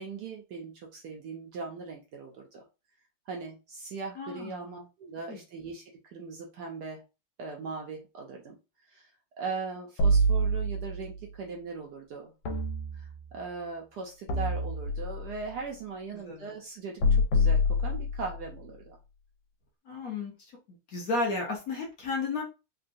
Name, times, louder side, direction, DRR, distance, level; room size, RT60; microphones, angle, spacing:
voice 1, 0.0-2.6 3.3-5.8 6.1-7.0 7.4-8.6 8.9-9.1 9.4-12.3 12.9-19.0, right 4 dB, 75° right, 1 dB, 0.9 m, -39 dB
voice 2, 4.2-4.7 5.3-5.4 16.1-16.5 19.9-20.3 20.9-22.4, left 3 dB, 60° left, 0 dB, 0.9 m, -33 dB
sound 1, 10.0-11.1 12.5-13.4 14.3-15.4 17.0-18.4, left 1 dB, 80° left, 1.5 m, -26 dB
3.7 x 2.2 x 2.5 m, 0.28 s
omnidirectional pair, 2.3 m